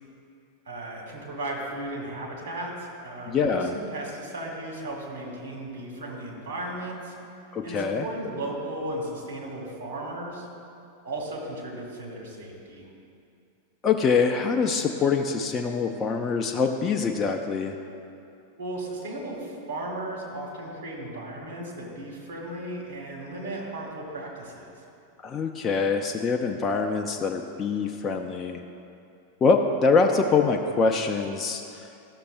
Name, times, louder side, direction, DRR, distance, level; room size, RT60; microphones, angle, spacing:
voice 1, 0.7-7.2 7.6-10.5 11.0-12.9 18.6-24.7, right 1 dB, 65° right, -2 dB, 2.0 m, -35 dB
voice 2, 3.3-3.8 7.5-8.1 13.8-17.8 25.2-28.6 29.4-31.9, left 5 dB, 25° left, 3 dB, 0.4 m, -24 dB
13.0 x 6.7 x 2.4 m, 2.6 s
figure-of-eight pair, 90°, 0 cm